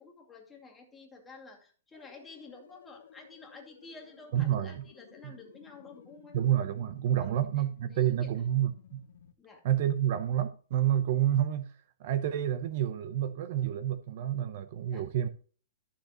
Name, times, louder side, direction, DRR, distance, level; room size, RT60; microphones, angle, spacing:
voice 1, 0.0-6.3 7.2-7.6 7.9-8.3 9.4-9.6 14.9-15.0, left 4 dB, 10° left, 2.3 m, -51 dB
sound 1, 1.9-9.3, left 8 dB, 75° left, 1.1 m, -56 dB
voice 2, 4.3-4.8 5.2-5.3 6.3-9.0 9.6-11.7 12.0-15.3, right 11 dB, 45° right, 0.8 m, -29 dB
14.0 x 6.7 x 3.0 m
hypercardioid pair, 160°, 0 cm